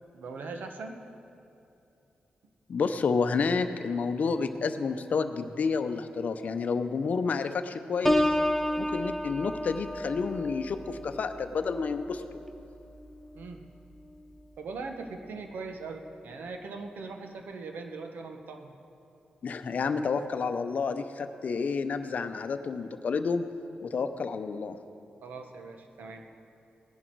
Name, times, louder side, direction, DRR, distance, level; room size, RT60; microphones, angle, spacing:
voice 1, 0.1-1.0 13.3-13.6 14.6-18.7 25.2-26.3, right 4 dB, 80° right, 5 dB, 1.0 m, -40 dB
voice 2, 2.7-8.3 8.8-12.2 19.4-23.5 23.8-24.8, left 5 dB, 55° left, 9 dB, 0.7 m, -30 dB
Piano, 8.0-13.7 14.1-14.5, left 1 dB, 5° left, 0.6 m, -31 dB
18.0 x 10.5 x 4.6 m, 2.7 s
wide cardioid pair, 120°, 3 cm